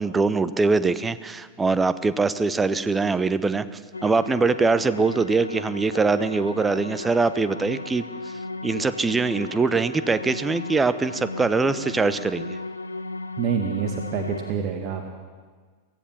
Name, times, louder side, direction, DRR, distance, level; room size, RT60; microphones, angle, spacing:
voice 1, 0.0-3.6 4.0-8.1 8.6-12.6, right 4 dB, 15° right, 14 dB, 0.9 m, -23 dB
sound 1, 3.9-14.5, left 2 dB, 80° left, 1.0 m, -35 dB
voice 2, 13.4-15.1, right 7 dB, 40° right, 4 dB, 1.9 m, -27 dB
23.5 x 16.5 x 7.4 m, 1.5 s
figure-of-eight pair, 90°, 0 cm